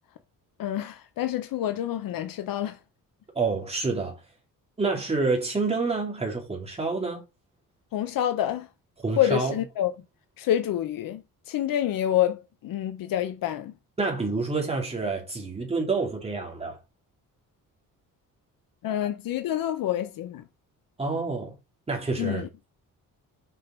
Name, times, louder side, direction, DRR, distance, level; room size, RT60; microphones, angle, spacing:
voice 1, 0.6-2.8 7.9-8.7 9.2-9.9 10.4-13.7 18.8-20.4 22.2-22.5, left 11 dB, 80° left, 0.8 m, -27 dB
voice 2, 3.3-4.2 4.8-7.2 9.0-9.5 14.0-16.8 21.0-21.5 21.9-22.4, right 3 dB, 20° right, 2.7 m, -28 dB
6.5 x 5.2 x 4.4 m
cardioid pair, 155°, 34 cm